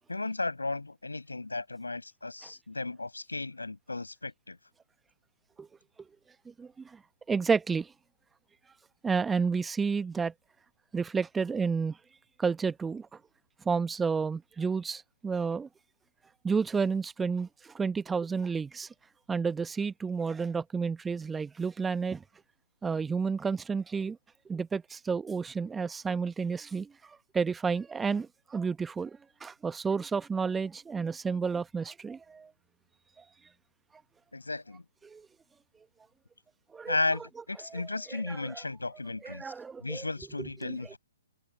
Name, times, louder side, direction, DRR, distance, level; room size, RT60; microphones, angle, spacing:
voice 1, 0.1-4.6 34.3-34.8 36.9-39.5 39.8-41.0, left 3 dB, 80° left, 5.7 m, -34 dB
voice 2, 6.6-7.0 7.3-7.9 9.0-10.3 10.9-12.0 12.4-13.1 13.6-15.7 16.4-18.9 19.3-22.2 22.8-24.2 24.5-32.5 35.0-35.3 36.7-36.9 37.7-37.8 38.1-38.6 39.2-40.0 40.4-40.9, right 5 dB, 10° right, 1.0 m, -31 dB
figure-of-eight pair, 125°, 0 cm